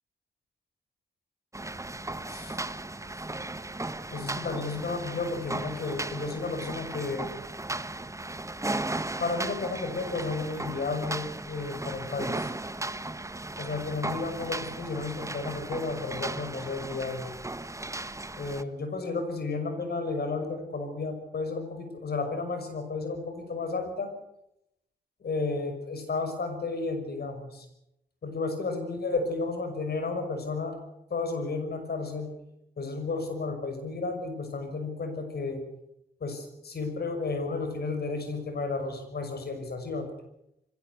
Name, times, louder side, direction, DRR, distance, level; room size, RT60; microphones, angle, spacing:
sound 1, 1.5-18.6, right 2 dB, 15° right, 1.2 m, -36 dB
voice 1, 2.3-2.6 4.1-7.3 9.2-12.5 13.6-17.3 18.4-24.1 25.2-27.7 28.2-30.8 31.1-32.3 32.8-35.6 36.2-40.1, left 3 dB, 70° left, 7 dB, 5.9 m, -32 dB
22.5 x 17.5 x 8.2 m, 0.83 s
cardioid pair, 60°, 17 cm